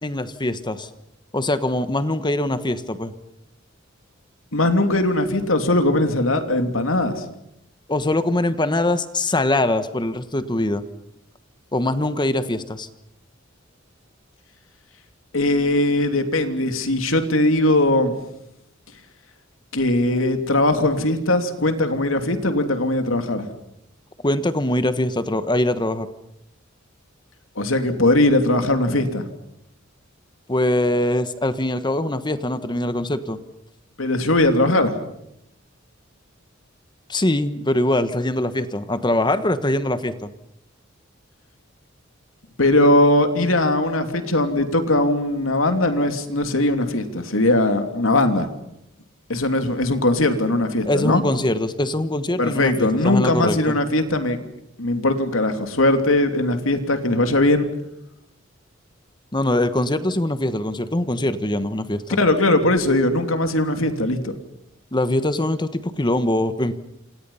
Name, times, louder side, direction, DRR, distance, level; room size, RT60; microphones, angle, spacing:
voice 1, 0.0-0.9 1.3-3.1 7.9-10.8 11.7-12.9 24.2-26.1 30.5-33.4 37.1-40.3 50.8-53.7 59.3-62.2 64.9-66.7, left 1 dB, 20° left, 11 dB, 1.3 m, -22 dB
voice 2, 4.5-7.2 15.3-18.1 19.7-23.5 27.6-29.2 34.0-34.9 42.6-48.5 49.3-51.2 52.4-54.4 54.8-57.7 62.2-64.3, left 1 dB, 85° left, 7 dB, 3.0 m, -20 dB
28.0 x 27.5 x 5.7 m, 0.80 s
head